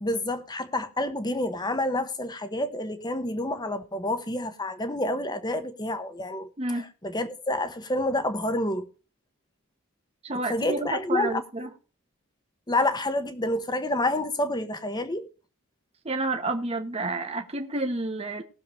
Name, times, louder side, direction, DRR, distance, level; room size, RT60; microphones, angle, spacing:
voice 1, 0.0-8.9 10.5-11.7 12.7-15.3, left 1 dB, 20° left, 1.1 m, -28 dB
voice 2, 10.2-11.7 16.0-18.4, right 2 dB, 30° right, 1.1 m, -30 dB
20.0 x 7.0 x 3.2 m
head